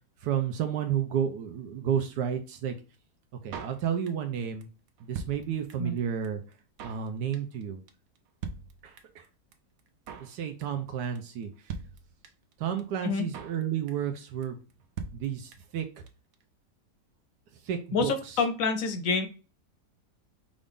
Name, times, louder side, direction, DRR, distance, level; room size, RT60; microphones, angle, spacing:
voice 1, 0.2-2.7 3.4-4.7 5.0-6.4 6.8-7.8 8.8-9.2 10.2-11.7 12.6-14.6 15.1-16.0 17.6-18.4, right 8 dB, 85° right, 5 dB, 1.2 m, -31 dB
Drum kit, 3.5-4.3 4.6-4.7 4.9-6.0 6.2-6.3 6.5-7.1 7.3-7.6 7.9-8.0 8.2-8.3 8.4-9.3 9.5-9.6 9.8-10.4 10.6-10.9 11.2-11.3 11.4-11.5 11.7-12.5 12.8-12.9 13.1-13.6 13.9-14.2 14.4-14.5 14.7-14.8 15.0-15.8 16.1-16.2 16.3-16.4, right 5 dB, 65° right, 1.0 m, -41 dB
voice 2, 17.9-19.3, left 4 dB, 65° left, 8 dB, 0.9 m, -27 dB
5.0 x 2.6 x 3.6 m, 0.34 s
omnidirectional pair, 1.8 m